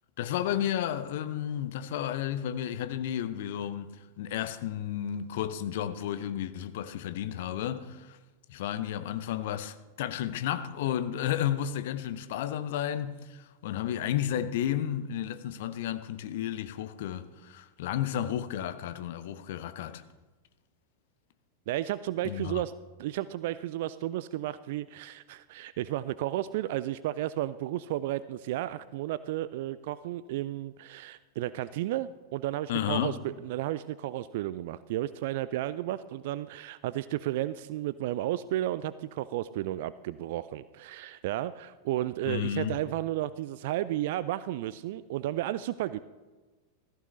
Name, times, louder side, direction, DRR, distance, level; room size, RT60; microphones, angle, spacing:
voice 1, 0.2-3.9 4.2-8.2 8.5-20.0 22.2-22.6 32.7-33.2 42.3-42.8, left 10 dB, 55° left, 0.8 m, -32 dB
voice 2, 21.7-22.7 23.0-46.0, right 14 dB, 50° right, 0.3 m, -33 dB
16.0 x 14.0 x 3.2 m
figure-of-eight pair, 90°, 0 cm